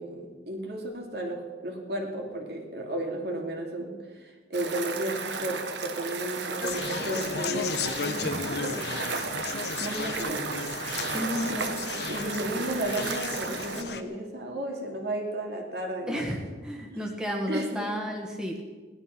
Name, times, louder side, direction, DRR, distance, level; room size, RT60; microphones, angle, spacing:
voice 1, 0.0-8.8 9.8-10.6 11.5-11.6 12.1-16.3 16.9-17.1 17.5-17.9, right 1 dB, 60° right, 1 dB, 2.6 m, -33 dB
sound 1, 4.5-13.8, right 5 dB, 75° right, 1.3 m, -34 dB
Conversation, 6.6-14.0, left 5 dB, 65° left, 0.9 m, -34 dB
voice 2, 11.1-11.6 16.1-18.6, equal, 5° right, 0 dB, 1.6 m, -32 dB
17.5 x 12.0 x 5.9 m, 1.3 s
head